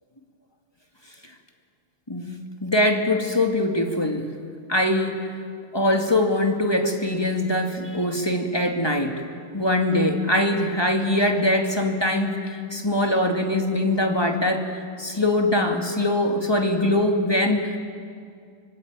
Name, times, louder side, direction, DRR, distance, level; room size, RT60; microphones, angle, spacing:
voice 1, 2.1-4.3 4.7-5.3 5.7-9.2 9.5-17.8, left 1 dB, 10° left, 3 dB, 2.2 m, -22 dB
25.0 x 25.0 x 9.1 m, 2.2 s
omnidirectional pair, 2.3 m